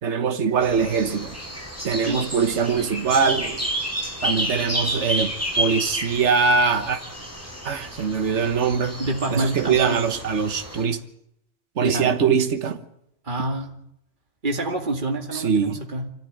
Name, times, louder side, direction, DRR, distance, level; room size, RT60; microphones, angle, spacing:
voice 1, 0.0-1.4 1.8-3.7 4.2-7.0 7.6-9.0 9.3-11.0 11.8-12.8 15.3-15.8, right 5 dB, 65° right, 1.7 m, -22 dB
sound 1, 0.6-10.8, equal, 10° left, 5.5 m, -31 dB
voice 2, 9.0-10.0 11.8-12.1 13.2-13.7 14.4-16.1, right 2 dB, 40° right, 2.5 m, -27 dB
25.5 x 14.5 x 9.3 m
omnidirectional pair, 1.3 m